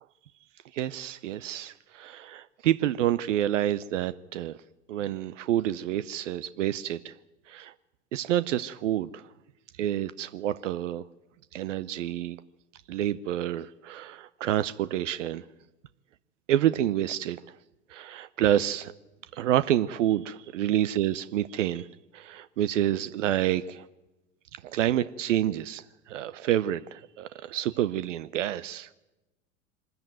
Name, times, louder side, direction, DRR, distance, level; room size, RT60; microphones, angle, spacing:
voice 1, 0.7-4.6 4.9-7.1 7.5-7.7 8.1-9.3 9.8-11.0 11.5-12.4 12.9-15.4 16.5-17.4 17.9-18.9 19.3-21.9 22.1-23.9 24.5-28.9, right 12 dB, 80° right, 14 dB, 0.8 m, -28 dB
24.0 x 14.0 x 9.1 m, 1.0 s
hypercardioid pair, 85°, 37 cm